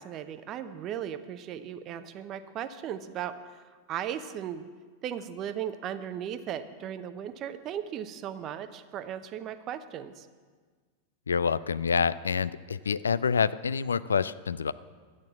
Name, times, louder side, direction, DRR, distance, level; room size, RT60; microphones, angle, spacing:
voice 1, 0.0-3.3 3.9-4.6 5.0-10.3, right 9 dB, 35° right, 11 dB, 0.7 m, -36 dB
voice 2, 11.3-14.7, left 6 dB, 70° left, 17 dB, 0.3 m, -27 dB
11.5 x 8.7 x 7.4 m, 1.5 s
figure-of-eight pair, 90°, 0 cm